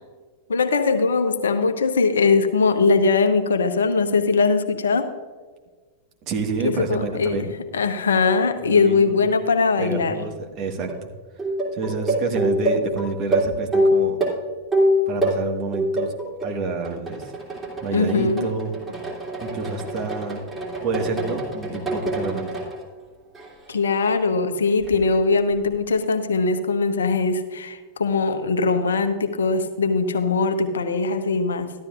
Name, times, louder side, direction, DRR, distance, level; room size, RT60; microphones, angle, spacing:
voice 1, 0.5-5.1 6.6-7.4 7.7-10.1 17.9-18.5 23.7-31.7, left 4 dB, 70° left, 8 dB, 0.9 m, -21 dB
voice 2, 6.3-7.5 8.6-9.2 9.8-11.1 11.7-14.2 15.1-16.1 16.4-17.2 17.8-18.7 19.4-20.4 20.8-22.5, right 4 dB, 40° right, 2 dB, 1.6 m, -28 dB
sound 1, 10.8-11.0 11.4-15.4 15.7-16.5 16.8-22.8 23.3-23.8 24.8-25.0, equal, 15° right, 3.0 m, -25 dB
14.0 x 12.0 x 2.5 m, 1.4 s
figure-of-eight pair, 90°, 0 cm